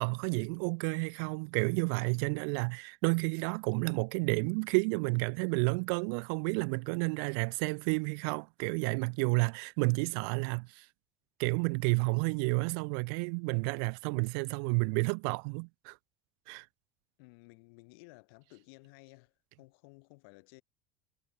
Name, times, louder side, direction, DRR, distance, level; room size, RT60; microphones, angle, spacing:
voice 1, 0.0-10.9 11.4-16.0 16.5-16.7, right 39 dB, 70° right, 0.6 m, -31 dB
voice 2, 17.2-20.6, left 30 dB, 80° left, 2.6 m, -56 dB
cardioid pair, 170°, 12 cm